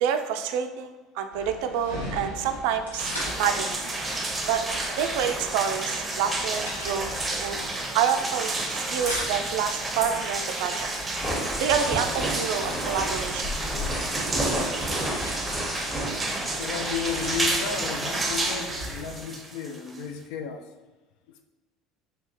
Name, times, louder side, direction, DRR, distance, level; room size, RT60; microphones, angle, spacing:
voice 1, 0.0-3.8 4.1-4.6 5.0-7.1 7.4-7.6 7.9-10.9 11.6-13.4, right 8 dB, 65° right, 7 dB, 0.3 m, -28 dB
sound 1, 1.3-19.2, left 1 dB, 90° left, 0.8 m, -40 dB
sound 2, 3.0-20.2, right 2 dB, 20° right, 0.6 m, -31 dB
sound 3, 11.0-16.9, right 1 dB, 10° left, 1.1 m, -32 dB
voice 2, 16.5-20.7, left 7 dB, 65° left, 6 dB, 0.3 m, -33 dB
3.3 x 2.8 x 2.9 m, 1.2 s
figure-of-eight pair, 65°, 0 cm